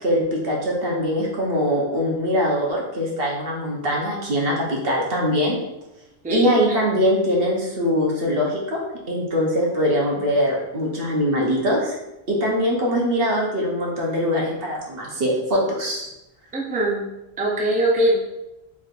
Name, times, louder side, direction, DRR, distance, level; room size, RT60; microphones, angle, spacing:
voice 1, 0.0-5.6 6.3-8.8 9.1-12.0 12.3-16.1, equal, 65° right, -2 dB, 1.1 m, -22 dB
voice 2, 16.5-17.1 17.4-18.2, right 1 dB, 10° right, -3 dB, 0.5 m, -21 dB
4.2 x 3.5 x 2.5 m, 0.94 s
omnidirectional pair, 1.1 m